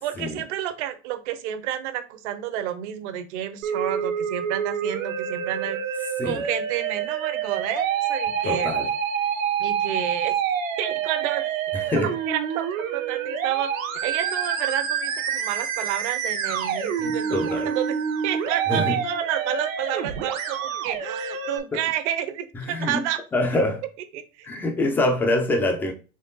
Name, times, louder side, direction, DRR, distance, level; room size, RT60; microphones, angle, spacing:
voice 1, 0.0-8.7 9.6-10.4 10.8-11.4 12.3-12.7 12.9-13.7 14.0-17.9 18.2-23.2 23.5-23.6 24.1-24.5, right 11 dB, 60° right, 0.8 m, -30 dB
Musical instrument, 3.6-21.6, right 7 dB, 85° right, 1.2 m, -27 dB
voice 2, 8.4-8.9 11.7-12.2 17.0-17.7 18.7-19.0 21.7-21.8 22.5-23.0 23.3-23.8 24.4-25.9, left 1 dB, 5° left, 0.3 m, -25 dB
4.4 x 3.0 x 3.6 m
supercardioid pair, 145°, 39 cm